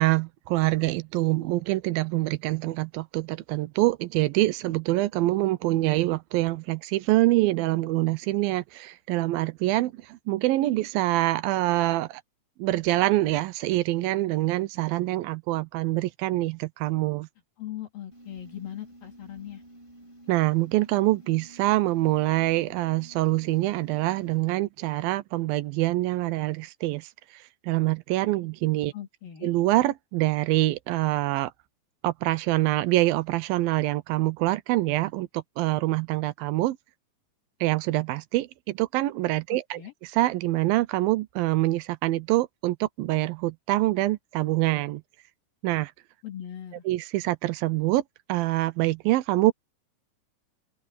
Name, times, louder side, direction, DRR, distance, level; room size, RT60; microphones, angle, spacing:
voice 1, 0.0-12.2 12.6-17.3 20.3-28.9 29.4-31.5 32.0-36.8 37.6-39.8 40.1-45.0 45.6-45.9 46.9-48.0 48.3-49.5, right 17 dB, 80° right, 2.6 m, -25 dB
voice 2, 17.6-19.6 28.9-29.5 39.5-39.9 46.2-46.8, left 11 dB, 75° left, 5.0 m, -39 dB
sound 1, 18.1-24.4, right 1 dB, 10° right, 4.8 m, -51 dB
open air
omnidirectional pair, 4.2 m